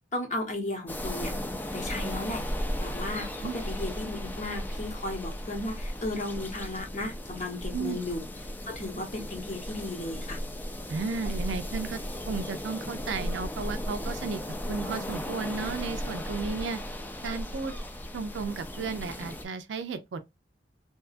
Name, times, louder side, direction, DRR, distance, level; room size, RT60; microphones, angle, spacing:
voice 1, 0.1-1.3 1.7-2.4 2.8-8.2 8.7-10.4, left 2 dB, 40° left, 0.8 m, -35 dB
sound 1, 0.9-19.4, equal, 10° left, 0.3 m, -36 dB
voice 2, 10.9-12.0 12.3-14.4 14.7-16.8 17.2-17.7 18.1-20.2, right 4 dB, 85° right, 0.4 m, -33 dB
2.7 x 2.3 x 2.4 m
head